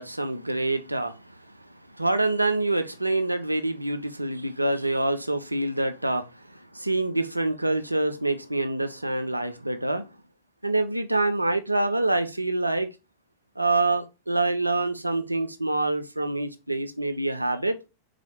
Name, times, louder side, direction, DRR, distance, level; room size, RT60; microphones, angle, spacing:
voice 1, 0.0-1.4 1.9-10.1 10.6-12.9 13.6-17.8, right 2 dB, 85° right, 0.5 m, -26 dB
4.0 x 3.2 x 3.7 m
figure-of-eight pair, 90°, 0 cm